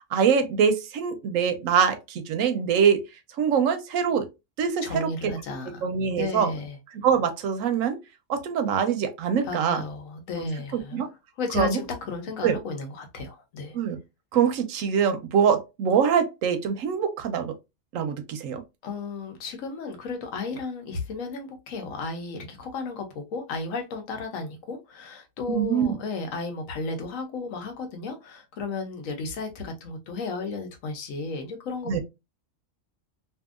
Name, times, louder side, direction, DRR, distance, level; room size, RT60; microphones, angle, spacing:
voice 1, 0.1-3.0 3.4-4.3 4.6-5.3 5.8-6.5 7.0-8.0 8.3-9.8 10.4-10.5 10.9-11.1 11.5-11.8 12.4-12.6 13.7-14.0 14.3-17.5 17.9-18.6 25.5-26.0 31.9-32.0, right 7 dB, 90° right, 1.0 m, -24 dB
voice 2, 4.8-5.9 6.1-6.8 9.4-11.0 11.4-13.8 18.8-32.0, left 3 dB, 80° left, 1.2 m, -34 dB
2.7 x 2.6 x 2.4 m
omnidirectional pair, 1.3 m